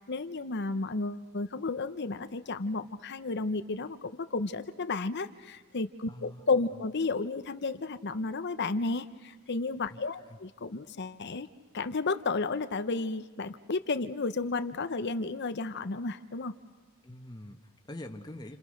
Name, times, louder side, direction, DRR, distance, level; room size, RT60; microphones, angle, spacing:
voice 1, 0.1-11.5 11.7-16.5, left 3 dB, 55° left, 11 dB, 0.8 m, -32 dB
voice 2, 6.1-6.6 9.9-10.4 17.0-18.6, left 1 dB, 20° left, 3 dB, 1.3 m, -45 dB
30.0 x 27.5 x 6.5 m, 1.4 s
head